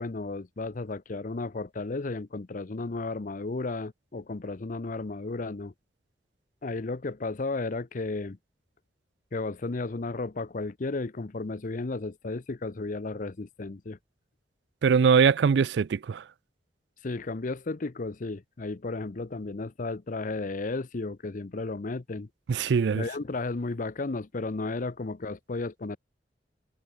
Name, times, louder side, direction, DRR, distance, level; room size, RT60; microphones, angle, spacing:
voice 1, 0.0-5.7 6.6-8.4 9.3-14.0 17.0-22.3 22.9-26.0, left 3 dB, 45° left, 0.7 m, -33 dB
voice 2, 14.8-16.2 22.5-23.0, right 6 dB, 70° right, 0.4 m, -22 dB
head